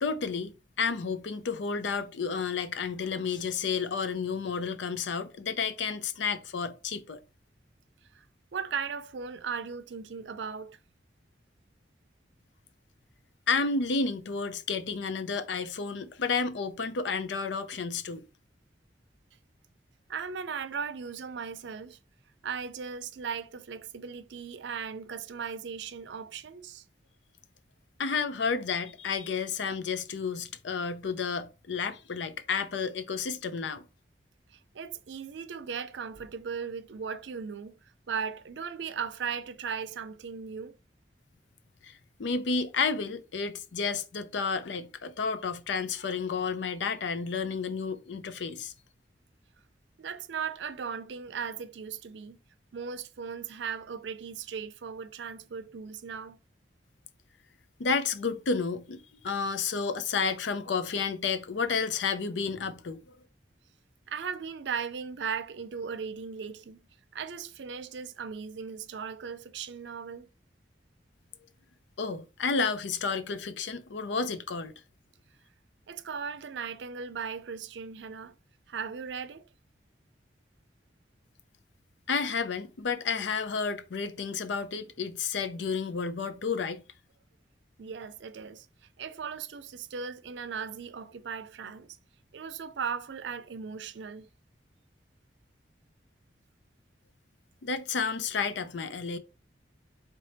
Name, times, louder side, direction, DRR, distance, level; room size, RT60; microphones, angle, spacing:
voice 1, 0.0-7.2 13.5-18.3 28.0-33.8 41.8-48.7 57.8-63.1 72.0-74.7 82.1-86.8 97.6-99.2, left 5 dB, 85° left, 0.5 m, -31 dB
voice 2, 8.5-10.8 20.1-22.0 22.4-26.8 34.5-37.8 38.1-40.8 50.0-52.4 52.7-56.4 64.1-66.8 67.1-70.3 75.9-78.4 78.7-79.5 87.8-88.7 89.0-92.0 92.3-94.3, right 6 dB, 80° right, 0.5 m, -37 dB
3.3 x 3.3 x 4.0 m
head